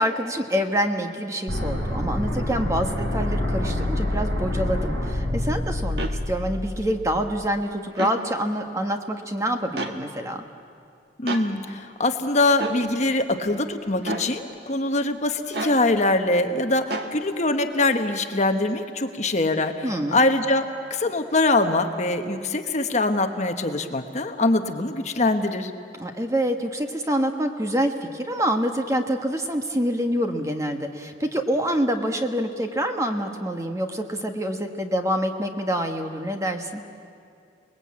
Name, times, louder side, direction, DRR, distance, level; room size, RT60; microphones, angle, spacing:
voice 1, 0.0-10.4 19.8-20.2 26.0-36.8, equal, 15° right, 5 dB, 1.3 m, -26 dB
sound 1, 1.5-7.5, left 1 dB, 75° right, 5.4 m, -27 dB
sound 2, 6.0-6.2 7.9-8.2 9.8-10.0 11.3-11.5 12.6-12.8 14.0-14.3 15.5-15.8 16.9-17.1, right 2 dB, 60° right, 1.7 m, -29 dB
voice 2, 11.2-20.6 20.9-25.7, left 2 dB, 40° left, 6 dB, 1.2 m, -23 dB
29.0 x 20.0 x 8.6 m, 2.4 s
head